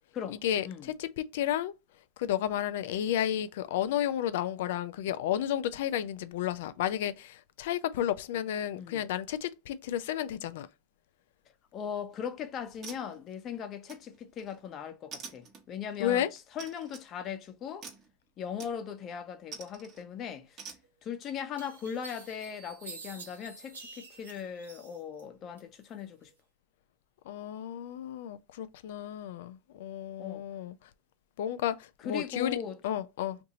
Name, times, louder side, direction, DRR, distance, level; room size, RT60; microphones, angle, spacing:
voice 1, 0.3-1.7 2.2-10.7 16.0-16.3 27.3-30.9 31.4-32.6 32.8-33.4, left 11 dB, 70° left, 0.4 m, -32 dB
voice 2, 11.7-16.2 16.5-17.9 18.4-20.6 21.0-26.3 30.2-30.4 32.0-32.8, left 8 dB, 40° left, 0.8 m, -39 dB
sound 1, 12.0-12.3 12.8-13.5 13.9-14.6 15.1-15.9 16.6-17.1 17.8-18.1 18.6-19.0 19.5-20.0 20.6-20.8, right 6 dB, 40° right, 1.0 m, -46 dB
sound 2, 20.8-20.9 21.6-25.2 25.6-26.3, right 4 dB, 90° right, 0.7 m, -48 dB
2.7 x 2.6 x 4.0 m
hypercardioid pair, 95°, 0 cm